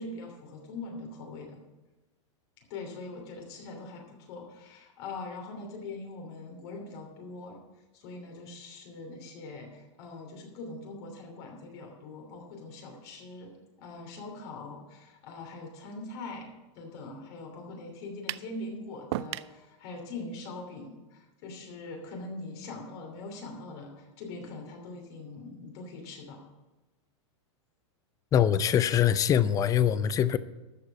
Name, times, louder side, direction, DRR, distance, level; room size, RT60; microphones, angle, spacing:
voice 1, 0.0-1.6 2.7-7.6 7.9-13.5 13.8-16.5 16.7-26.5, left 3 dB, 55° left, 3.0 m, -42 dB
sound 1, 18.3-18.5 19.1-19.6, right 15 dB, 60° right, 0.4 m, -34 dB
voice 2, 28.3-30.4, left 9 dB, 20° left, 0.5 m, -23 dB
13.5 x 4.9 x 8.3 m
supercardioid pair, 135°, 16 cm